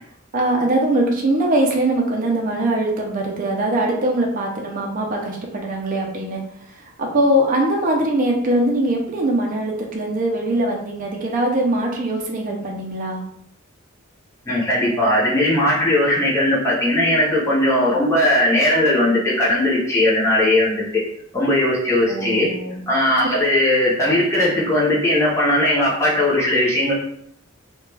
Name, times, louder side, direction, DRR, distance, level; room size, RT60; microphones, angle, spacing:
voice 1, 0.3-6.4 6.7-13.2 22.1-22.8, right 1 dB, 40° right, -1 dB, 0.4 m, -21 dB
voice 2, 14.5-21.0 21.3-22.5 22.9-26.9, left 1 dB, 15° left, -7 dB, 0.6 m, -18 dB
2.3 x 2.2 x 3.1 m, 0.68 s
head